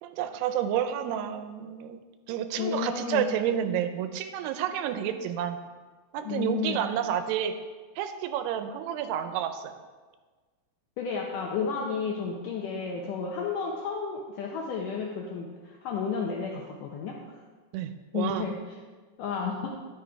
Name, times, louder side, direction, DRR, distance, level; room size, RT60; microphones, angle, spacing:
voice 1, 0.0-2.0 2.3-5.6 6.1-7.5 8.0-9.7 17.7-18.5, right 9 dB, 85° right, 9 dB, 2.6 m, -30 dB
voice 2, 2.6-3.3 6.3-6.9 11.0-17.4 18.1-18.6 19.2-19.7, left 5 dB, 80° left, -1 dB, 1.9 m, -32 dB
11.0 x 6.5 x 4.5 m, 1.4 s
omnidirectional pair, 4.7 m